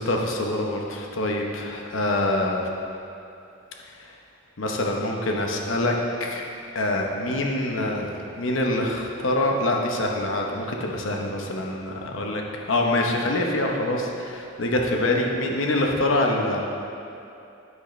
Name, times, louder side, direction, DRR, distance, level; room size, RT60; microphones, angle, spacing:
voice 1, 0.0-2.7 4.0-4.1 4.6-5.9 6.2-6.5 6.7-8.1 8.3-12.4 12.7-16.6, left 1 dB, 75° left, 1 dB, 0.9 m, -25 dB
10.5 x 6.4 x 3.2 m, 2.7 s
head